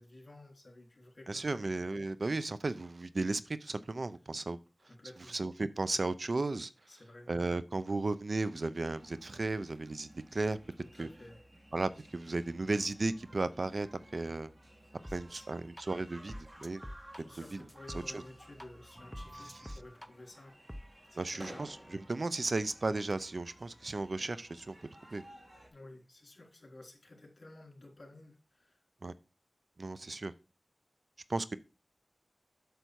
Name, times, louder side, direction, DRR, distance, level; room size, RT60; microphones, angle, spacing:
voice 1, 0.0-1.6 4.2-4.4 4.8-5.4 6.9-7.3 10.7-11.4 15.1-15.7 17.1-20.6 21.1-21.7 25.7-28.8, left 2 dB, 50° left, 1 dB, 3.4 m, -54 dB
voice 2, 1.3-4.6 5.3-6.7 7.3-10.6 11.0-11.1 11.7-13.9 14.1-14.5 15.1-15.6 15.9-16.3 16.6-16.8 21.2-21.7 22.1-24.7 25.1-25.2 29.0-29.1 29.8-30.3 31.3-31.6, right 3 dB, 60° right, 14 dB, 0.5 m, -34 dB
sound 1, 8.7-25.7, right 1 dB, 40° right, 2.9 m, -56 dB
sound 2, 15.0-15.2 15.8-15.9 16.3-18.6 18.9-20.1 20.7-20.8, equal, ahead, 0.8 m, -46 dB
8.0 x 6.8 x 4.6 m, 0.31 s
wide cardioid pair, 60°, 0 cm